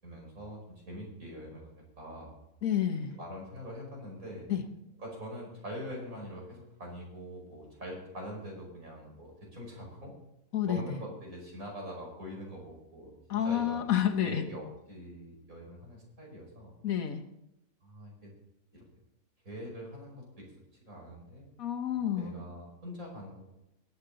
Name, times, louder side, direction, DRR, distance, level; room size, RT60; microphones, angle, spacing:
voice 1, 0.0-2.3 3.2-4.5 5.0-10.1 10.6-13.1 13.4-13.9 14.2-16.7 17.8-18.3 18.7-18.8 19.4-20.5 20.8-21.4 21.9-23.6, equal, 80° right, -2 dB, 5.7 m, -44 dB
voice 2, 2.6-3.2 4.5-4.6 10.5-10.8 13.3-14.4 16.8-17.2 21.6-22.4, left 10 dB, 85° left, 6 dB, 1.5 m, -29 dB
19.0 x 8.7 x 3.9 m, 0.86 s
omnidirectional pair, 1.4 m